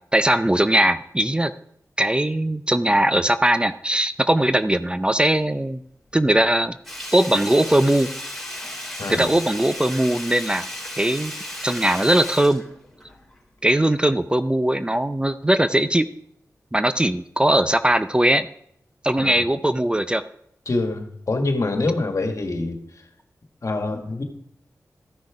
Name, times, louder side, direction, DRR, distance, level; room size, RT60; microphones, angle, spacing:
voice 1, 0.1-1.5 2.0-5.8 6.1-6.8 7.1-8.1 9.1-10.7 10.9-11.3 11.6-12.6 13.6-16.1 16.7-18.5 19.0-20.2, right 1 dB, 15° right, 12 dB, 0.5 m, -20 dB
Sink (filling or washing), 6.8-13.4 13.7-13.8, left 1 dB, 5° left, 3.6 m, -35 dB
voice 2, 9.0-9.4 19.2-19.4 20.6-23.0 23.6-24.2, left 2 dB, 60° left, 4 dB, 1.7 m, -25 dB
13.0 x 6.4 x 4.9 m, 0.70 s
cardioid pair, 45°, 6 cm